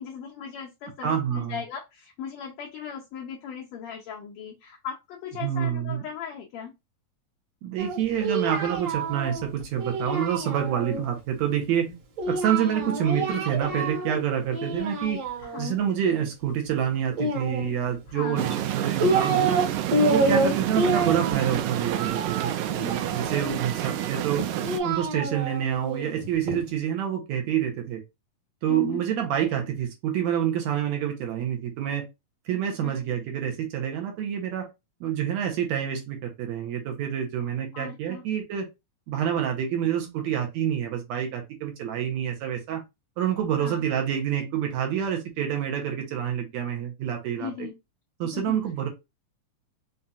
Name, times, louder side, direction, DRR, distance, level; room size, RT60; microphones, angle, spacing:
voice 1, 0.0-6.7 15.4-15.8 18.1-18.5 20.2-20.5 22.6-23.0 28.7-29.0 32.8-33.0 37.7-38.2 43.6-43.8 47.4-47.7 48.3-48.6, left 7 dB, 85° left, 1.5 m, -38 dB
voice 2, 1.0-1.6 5.4-6.0 7.6-12.0 12.3-15.2 15.6-19.6 20.0-24.4 24.8-28.0 28.6-32.1 32.5-34.7 35.0-38.7 39.1-42.8 43.2-47.7 48.2-48.9, right 9 dB, 75° right, 1.7 m, -27 dB
Singing, 7.8-11.0 12.2-14.2 14.5-15.7 17.1-18.1 18.7-19.7 19.9-23.6 24.4-26.6, right 2 dB, 55° right, 2.1 m, -28 dB
Interior Car Rain In Busy Parking Lot, 18.4-24.8, right 12 dB, 90° right, 1.7 m, -29 dB
5.5 x 2.6 x 2.4 m
omnidirectional pair, 3.9 m